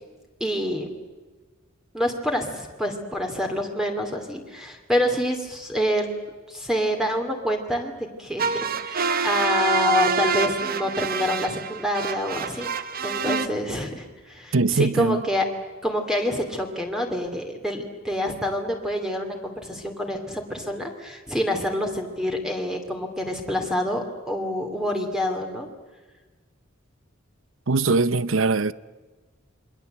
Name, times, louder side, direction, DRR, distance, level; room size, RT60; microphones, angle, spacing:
voice 1, 0.4-0.9 1.9-6.1 6.5-7.9 8.2-12.7 13.0-15.4 15.8-25.7, left 1 dB, 5° right, 2.7 m, -27 dB
sound 1, 8.4-13.5, right 5 dB, 45° right, 1.1 m, -26 dB
voice 2, 14.5-15.2 27.7-28.7, right 3 dB, 75° right, 0.8 m, -21 dB
28.0 x 23.0 x 8.1 m
head